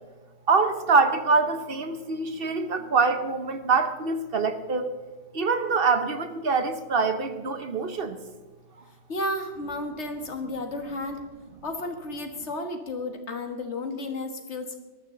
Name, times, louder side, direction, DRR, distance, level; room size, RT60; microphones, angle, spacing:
voice 1, 0.5-4.9 5.3-8.2, right 4 dB, 55° right, 9 dB, 1.1 m, -24 dB
voice 2, 9.1-11.3 11.6-14.8, left 2 dB, 75° left, 5 dB, 1.9 m, -32 dB
20.0 x 13.0 x 3.9 m, 1.3 s
omnidirectional pair, 1.2 m